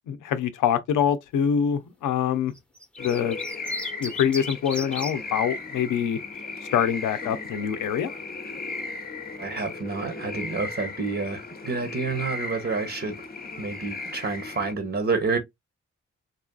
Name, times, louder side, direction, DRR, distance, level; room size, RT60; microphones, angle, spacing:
voice 1, 0.1-2.5 3.0-3.4 4.0-6.2 6.7-8.1, left 8 dB, 85° left, 0.6 m, -25 dB
sound 1, 2.6-5.1 6.4-6.8, left 2 dB, 5° left, 1.0 m, -35 dB
sound 2, 3.0-14.7, left 3 dB, 30° left, 0.8 m, -36 dB
voice 2, 9.4-13.2 13.6-15.4, right 4 dB, 40° right, 1.2 m, -29 dB
4.0 x 2.5 x 2.3 m
supercardioid pair, 40°, 30 cm